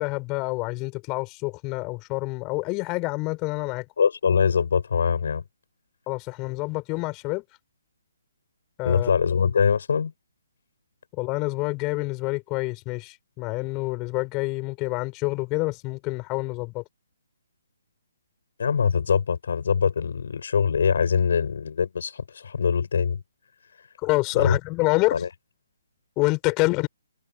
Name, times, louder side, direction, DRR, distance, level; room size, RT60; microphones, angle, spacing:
voice 1, 0.0-3.8 6.1-7.4 8.8-9.1 11.1-16.8 24.0-25.2 26.2-26.9, left 25 dB, 25° left, 6.4 m, -27 dB
voice 2, 4.0-5.4 8.8-10.1 18.6-23.2 24.4-24.6 25.1-25.3, left 6 dB, 60° left, 5.1 m, -23 dB
figure-of-eight pair, 135°, 0 cm